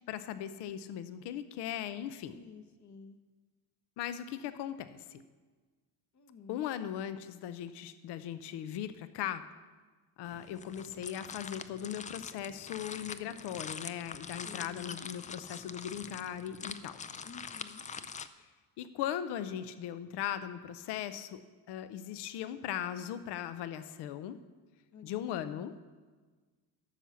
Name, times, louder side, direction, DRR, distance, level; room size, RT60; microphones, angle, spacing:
voice 1, 0.1-2.4 4.0-5.2 6.5-9.4 10.2-17.0 18.8-21.4 21.7-24.4 25.0-25.7, left 10 dB, 70° left, 12 dB, 0.7 m, -38 dB
voice 2, 2.3-3.2 6.1-6.6 14.4-15.0 17.2-17.9 24.9-25.7, left 4 dB, 40° left, 5 dB, 1.0 m, -51 dB
sound 1, 10.3-18.3, left 6 dB, 20° left, 0.3 m, -44 dB
12.5 x 5.7 x 7.0 m, 1.4 s
cardioid pair, 115°, 42 cm